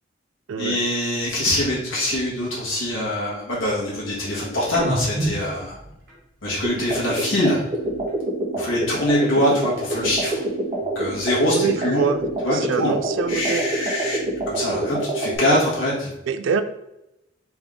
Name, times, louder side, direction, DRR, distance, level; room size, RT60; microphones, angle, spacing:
voice 1, 0.6-5.8 6.4-7.6 8.5-10.4 10.9-12.0 12.4-12.9 13.3-14.2 14.5-16.1, left 1 dB, 90° left, -6 dB, 1.5 m, -23 dB
sound 1, 4.7-8.3 8.6-10.4 10.7-12.6 12.9-14.8, right 1 dB, 50° right, 1.5 m, -35 dB
sound 2, 6.6-15.4, right 2 dB, 30° right, 1.0 m, -27 dB
voice 2, 11.5-12.2 12.5-13.7 16.3-16.6, right 6 dB, 80° right, 11 dB, 0.3 m, -25 dB
3.5 x 3.4 x 3.6 m, 0.87 s
head